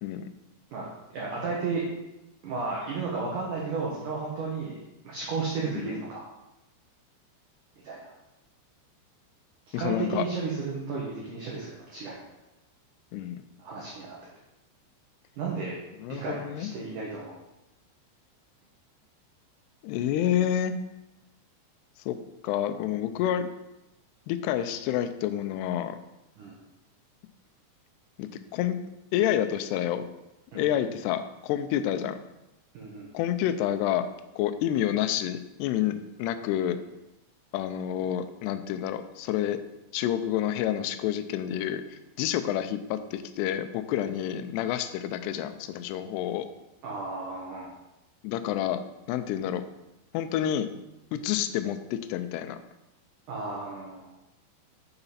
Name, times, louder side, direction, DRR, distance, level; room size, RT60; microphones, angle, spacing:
voice 1, 1.1-1.9 2.4-4.8 5.0-6.2 7.8-8.1 9.7-12.2 13.6-14.2 15.4-15.8 16.1-17.4 26.4-26.6 30.5-30.7 32.7-33.1 46.8-47.7 53.3-54.1, right 4 dB, 70° right, -4 dB, 2.0 m, -33 dB
voice 2, 9.7-10.3 13.1-13.4 16.0-16.7 19.8-20.7 22.1-22.2 22.4-23.5 24.3-26.0 28.2-28.8 29.1-30.0 30.5-32.2 33.1-34.0 34.4-36.8 37.5-39.6 39.9-46.5 48.2-48.8 49.1-49.7 50.1-50.7 51.1-52.6, left 11 dB, 85° left, 9 dB, 2.4 m, -29 dB
6.9 x 6.8 x 4.2 m, 0.94 s
omnidirectional pair, 5.3 m